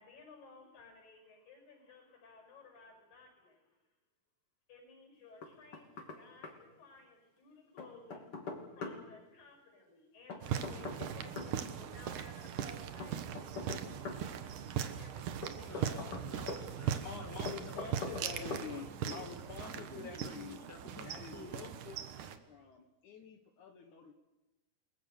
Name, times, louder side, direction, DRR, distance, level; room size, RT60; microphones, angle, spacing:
voice 1, 0.0-3.8 4.7-13.4 14.8-15.8, left 3 dB, 85° left, 4 dB, 7.3 m, -57 dB
Knock, 5.4-6.2 6.4-6.5 7.8-9.0 10.3-11.5 13.0-14.2 15.4-16.6 17.5-18.3 18.5-18.7, left 3 dB, 45° left, 3.7 m, -42 dB
sound 1, 10.4-22.4, right 9 dB, 70° right, 2.8 m, -40 dB
voice 2, 15.6-21.7, left 2 dB, 15° left, 4 dB, 0.6 m, -51 dB
voice 3, 17.0-20.6 21.0-24.1, left 6 dB, 65° left, 4 dB, 2.7 m, -47 dB
30.0 x 20.5 x 6.6 m, 1.1 s
omnidirectional pair, 3.9 m